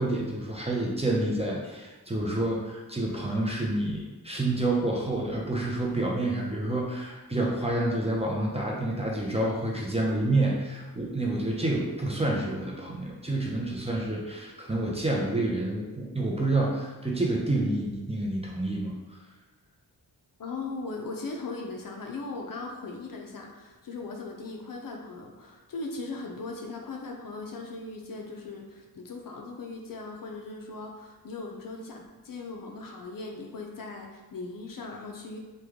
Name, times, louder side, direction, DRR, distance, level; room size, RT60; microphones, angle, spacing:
voice 1, 0.0-18.9, right 2 dB, 15° right, -3 dB, 0.5 m, -28 dB
voice 2, 20.4-35.4, left 3 dB, 55° left, 1 dB, 0.5 m, -39 dB
3.1 x 2.2 x 3.5 m, 1.2 s
wide cardioid pair, 100°, 40 cm